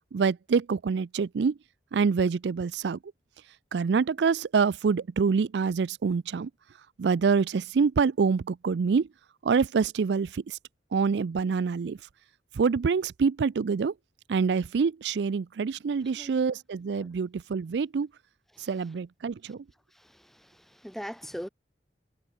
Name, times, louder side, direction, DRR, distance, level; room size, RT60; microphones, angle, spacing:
voice 1, 0.1-1.5 1.9-3.0 3.7-6.5 7.0-9.1 9.4-10.6 10.9-12.0 12.5-13.9 14.3-18.1 18.6-19.6, right 5 dB, 75° right, 0.4 m, -26 dB
voice 2, 16.0-16.4 17.0-17.1 18.5-18.7 19.5-19.6 19.9-21.5, equal, ahead, 2.0 m, -42 dB
head